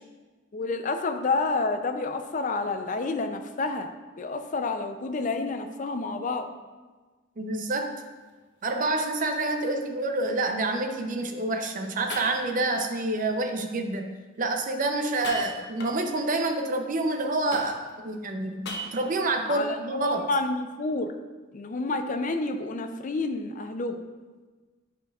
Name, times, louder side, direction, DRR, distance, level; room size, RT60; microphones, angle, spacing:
voice 1, 0.5-3.9 4.2-6.5 19.4-21.1 21.5-24.0, left 3 dB, 40° left, 7 dB, 0.4 m, -29 dB
voice 2, 7.4-7.9 8.6-14.1 14.4-18.6 18.9-20.2, right 2 dB, 40° right, 5 dB, 0.6 m, -28 dB
sound 1, 7.7-8.1 8.6-8.7 9.4-9.5 11.5-11.6 12.1-12.8 15.1-16.2 17.5-18.1 18.6-19.3, equal, 60° left, 0.9 m, -38 dB
9.3 x 5.3 x 2.4 m, 1.3 s
head